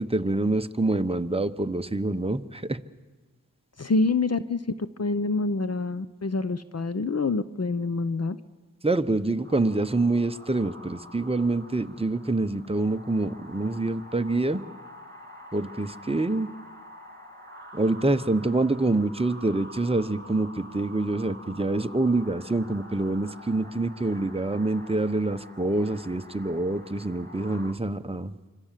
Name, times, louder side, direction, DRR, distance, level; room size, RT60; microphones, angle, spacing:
voice 1, 0.0-2.8 8.8-14.6 15.5-16.5 17.7-28.3, right 2 dB, 15° right, 9 dB, 0.9 m, -26 dB
voice 2, 3.8-8.4, left 3 dB, 45° left, 13 dB, 0.8 m, -26 dB
sound 1, 9.4-27.7, equal, 30° right, 3.1 m, -47 dB
25.5 x 25.5 x 7.5 m, 1.3 s
wide cardioid pair, 55°, 35 cm